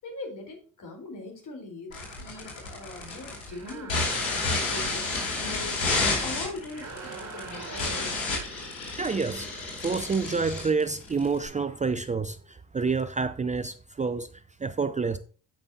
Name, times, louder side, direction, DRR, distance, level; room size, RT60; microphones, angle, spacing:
voice 1, 0.0-4.0 4.5-8.2, left 2 dB, 55° left, 4.2 m, -41 dB
sound 1, 1.9-11.5, left 3 dB, 85° left, 2.8 m, -31 dB
sound 2, 3.4-4.5 6.6-8.3, right 4 dB, 45° right, 4.4 m, -43 dB
voice 2, 9.0-14.3 14.6-15.2, right 4 dB, 20° right, 0.6 m, -28 dB
14.5 x 5.3 x 2.8 m
hypercardioid pair, 50°, 38 cm